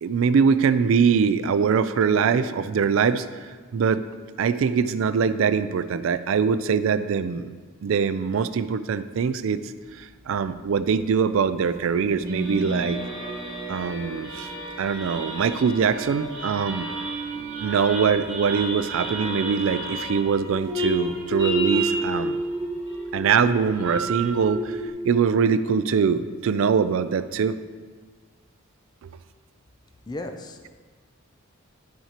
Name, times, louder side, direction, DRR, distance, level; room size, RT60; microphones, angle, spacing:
voice 1, 0.0-4.0 4.4-7.5 7.8-9.6 9.9-13.0 13.7-14.5 14.8-16.9 17.6-22.4 23.1-27.6, right 6 dB, 65° right, 13 dB, 0.3 m, -23 dB
sound 1, 11.7-24.9, right 1 dB, 45° right, 1.7 m, -31 dB
voice 2, 30.1-30.7, left 2 dB, 20° left, 5 dB, 0.4 m, -35 dB
10.5 x 5.6 x 2.9 m, 1.5 s
head